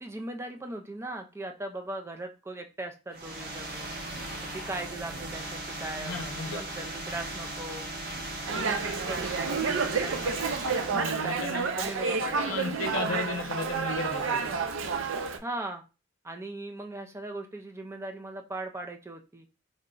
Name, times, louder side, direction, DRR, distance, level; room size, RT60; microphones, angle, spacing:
voice 1, 0.0-3.9 4.5-6.2 6.5-7.9 8.5-12.6 15.4-15.8 16.2-19.5, right 2 dB, 15° right, 0.4 m, -39 dB
sound 1, 3.1-11.1, right 1 dB, 50° right, 0.9 m, -38 dB
voice 2, 6.0-6.6 8.5-8.7 10.9-11.7 12.4-14.5, left 3 dB, 75° left, 0.6 m, -35 dB
Dog, 8.5-15.4, right 5 dB, 65° right, 0.5 m, -30 dB
3.7 x 2.2 x 3.7 m
head